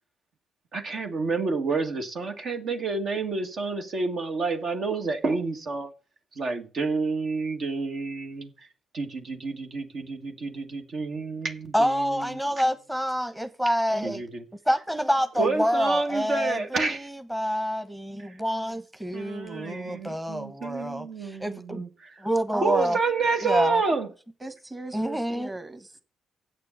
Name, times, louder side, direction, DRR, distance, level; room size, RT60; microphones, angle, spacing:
voice 1, 0.7-5.9 6.4-8.7 8.9-12.4 14.0-14.4 15.4-17.1 18.3-18.4 19.1-22.2 22.6-24.1, right 4 dB, 65° right, 1.6 m, -29 dB
voice 2, 11.7-14.2 14.7-21.8 22.2-23.0 23.4-23.8 24.9-25.5, equal, 10° right, 1.0 m, -27 dB
voice 3, 22.5-23.0 24.4-26.0, right 2 dB, 25° right, 1.8 m, -37 dB
8.1 x 6.8 x 7.9 m
supercardioid pair, 55°, 0 cm